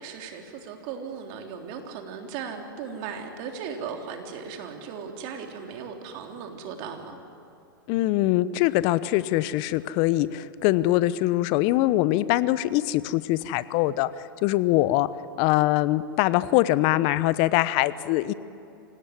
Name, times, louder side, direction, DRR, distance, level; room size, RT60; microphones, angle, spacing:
voice 1, 0.0-7.2, right 6 dB, 50° right, 3 dB, 3.6 m, -37 dB
voice 2, 7.9-14.1 14.4-15.1 15.4-18.3, left 16 dB, 45° left, 16 dB, 0.9 m, -23 dB
25.5 x 18.0 x 9.8 m, 2.7 s
hypercardioid pair, 105°, 12 cm